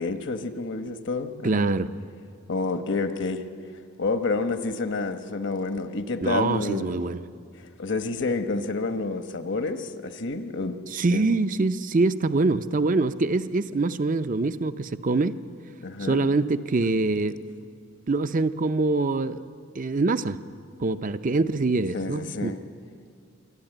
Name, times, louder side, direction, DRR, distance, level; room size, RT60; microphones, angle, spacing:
voice 1, 0.0-1.7 2.5-3.4 4.0-7.0 7.8-10.7 11.1-11.3 15.8-16.3 21.9-22.6, left 3 dB, 60° left, 8 dB, 1.1 m, -29 dB
voice 2, 1.4-1.9 6.2-7.2 10.9-15.4 16.0-17.4 18.1-19.4 19.7-20.4 20.8-22.5, right 3 dB, 40° right, 11 dB, 0.6 m, -24 dB
25.5 x 11.5 x 9.0 m, 2.3 s
head